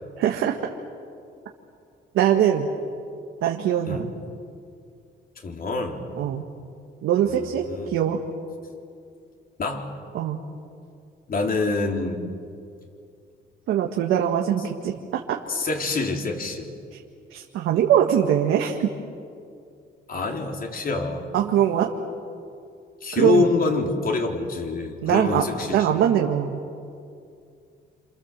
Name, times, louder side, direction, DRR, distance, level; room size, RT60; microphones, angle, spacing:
voice 1, 0.2-0.5 2.1-2.7 3.4-4.1 6.2-6.4 7.0-8.2 10.1-10.4 13.7-15.4 16.9-17.0 17.3-18.9 21.3-21.9 23.1-23.5 25.0-25.4 25.7-26.6, right 10 dB, 90° right, 2 dB, 1.8 m, -22 dB
voice 2, 5.4-6.0 7.3-7.9 9.6-9.9 11.3-12.2 15.5-16.7 20.1-21.3 23.0-26.0, left 3 dB, 45° left, 2 dB, 4.0 m, -26 dB
28.5 x 28.0 x 7.6 m, 2.4 s
cardioid pair, 90°, 20 cm